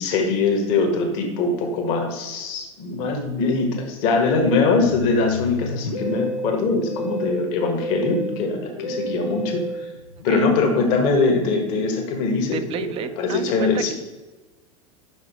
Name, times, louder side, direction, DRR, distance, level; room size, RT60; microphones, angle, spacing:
voice 1, 0.0-9.6 10.2-12.9 13.2-13.9, left 3 dB, 50° left, 3 dB, 1.4 m, -22 dB
Musical instrument, 4.3-11.1, equal, 85° left, 0.6 m, -32 dB
voice 2, 12.5-13.9, right 8 dB, 35° right, 12 dB, 0.5 m, -31 dB
5.5 x 5.1 x 4.7 m, 1.2 s
figure-of-eight pair, 80°, 17 cm